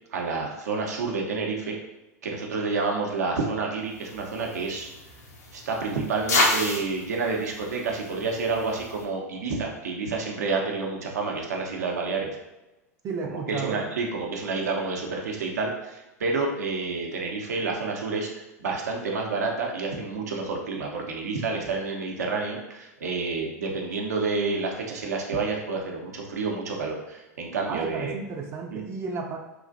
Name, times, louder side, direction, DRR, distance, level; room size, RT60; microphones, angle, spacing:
voice 1, 0.1-1.8 2.2-4.9 5.5-12.3 13.3-28.1 28.7-28.8, right 4 dB, 75° right, 0 dB, 0.6 m, -29 dB
sound 1, 3.9-9.0, left 2 dB, 75° left, 0.6 m, -31 dB
voice 2, 13.0-13.8 27.7-29.4, right 5 dB, 30° right, 1 dB, 0.4 m, -32 dB
3.0 x 2.4 x 2.5 m, 1.0 s
hypercardioid pair, 95°, 9 cm